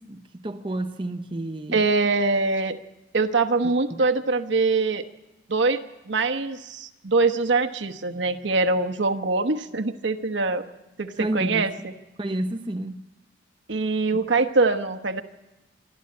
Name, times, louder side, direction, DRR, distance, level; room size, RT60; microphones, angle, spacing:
voice 1, 0.0-1.8 3.6-4.0 11.2-11.7 12.2-13.0, right 1 dB, 25° right, 0.7 m, -31 dB
voice 2, 1.7-2.8 3.1-5.0 5.5-5.8 6.1-10.7 11.0-11.9 13.7-15.2, right 3 dB, 70° right, 1.1 m, -23 dB
24.5 x 13.0 x 8.6 m
head